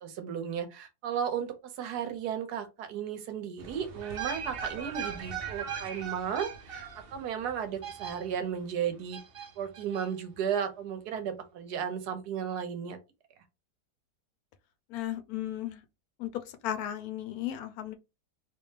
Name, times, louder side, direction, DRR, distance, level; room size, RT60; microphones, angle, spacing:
voice 1, 0.0-9.2 9.6-13.0, right 8 dB, 75° right, 1.3 m, -34 dB
sound 1, 3.6-8.6 9.1-10.1 10.3-10.4, right 7 dB, 50° right, 0.7 m, -39 dB
voice 2, 14.9-15.8 16.2-17.9, left 12 dB, 70° left, 1.0 m, -35 dB
3.3 x 2.8 x 3.2 m
omnidirectional pair, 1.7 m